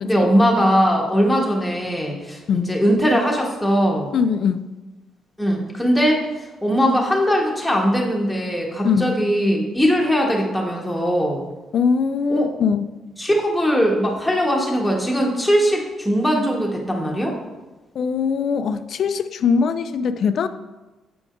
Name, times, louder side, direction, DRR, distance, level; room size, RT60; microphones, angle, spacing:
voice 1, 0.0-4.1 5.4-11.4 12.3-12.5 13.2-17.4, equal, 5° left, -2 dB, 1.2 m, -20 dB
voice 2, 4.1-4.7 8.8-9.1 11.7-12.8 17.9-20.5, left 6 dB, 60° left, 12 dB, 0.3 m, -21 dB
7.6 x 4.8 x 2.6 m, 1.1 s
cardioid pair, 90°, 0 cm